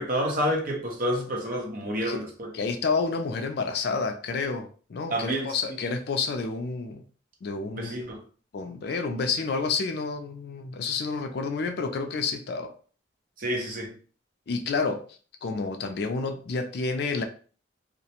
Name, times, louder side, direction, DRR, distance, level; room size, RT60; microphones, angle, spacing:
voice 1, 0.0-2.5 5.1-5.6 7.7-8.2 13.4-13.9, equal, 45° right, 0.7 m, -29 dB
voice 2, 2.5-7.0 7.4-8.0 8.5-12.7 14.5-15.0 15.4-17.2, left 4 dB, 55° left, 0.3 m, -29 dB
2.4 x 2.1 x 2.8 m
head